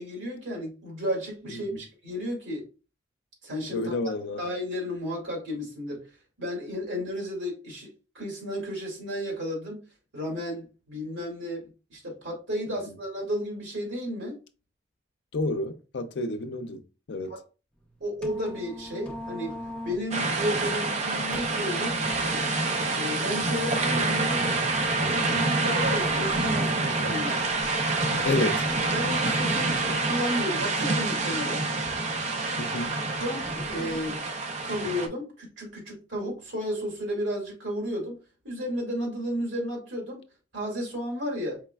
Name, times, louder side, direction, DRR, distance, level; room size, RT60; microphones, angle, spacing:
voice 1, 0.0-2.7 3.4-3.9 4.4-6.0 6.4-9.8 10.1-14.4 17.3-17.4 18.0-19.5 19.8-22.0 22.9-24.6 25.0-27.5 28.9-31.6 33.2-34.2 34.6-38.2 38.4-40.2 40.5-41.6, equal, 80° right, 1.9 m, -33 dB
voice 2, 3.7-4.4 12.7-13.0 15.3-16.8 17.1-17.4 28.1-28.6 32.6-33.1, left 2 dB, 65° left, 0.5 m, -30 dB
sound 1, 17.7-34.2, equal, 5° left, 0.6 m, -44 dB
sound 2, 20.1-35.1, right 3 dB, 35° right, 0.5 m, -27 dB
4.8 x 3.2 x 2.2 m
head